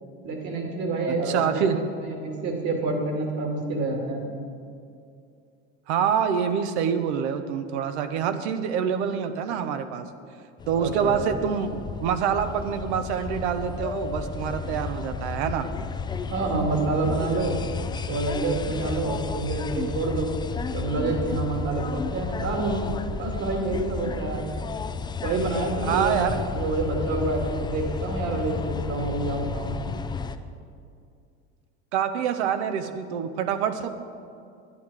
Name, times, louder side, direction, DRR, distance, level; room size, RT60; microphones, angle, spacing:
voice 1, 0.2-4.3 10.8-11.3 16.3-17.6 18.1-20.3 20.7-22.8 23.2-24.4 25.2-26.3 26.5-29.7, right 3 dB, 55° right, 1 dB, 2.4 m, -28 dB
voice 2, 1.3-1.8 5.9-10.1 10.7-15.7 25.8-26.4 31.9-33.9, right 8 dB, 75° right, 9 dB, 0.9 m, -26 dB
sound 1, 10.6-30.4, left 5 dB, 15° left, 0.4 m, -32 dB
11.0 x 9.8 x 4.8 m, 2.4 s
hypercardioid pair, 95°, 34 cm